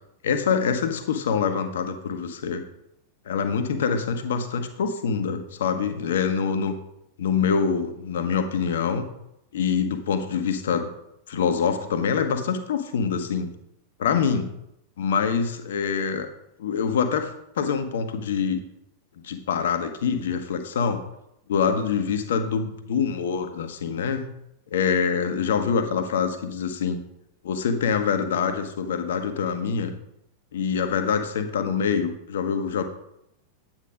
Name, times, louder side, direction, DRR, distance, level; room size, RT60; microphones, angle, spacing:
voice 1, 0.2-2.6 3.2-6.7 7.2-9.0 9.5-10.9 11.3-13.5 14.0-14.5 15.0-16.3 16.6-18.6 19.2-21.0 21.5-24.3 24.7-27.0 27.4-29.9 30.5-32.8, left 6 dB, 60° left, 8 dB, 1.2 m, -25 dB
9.5 x 8.9 x 3.8 m, 0.81 s
figure-of-eight pair, 90°, 0 cm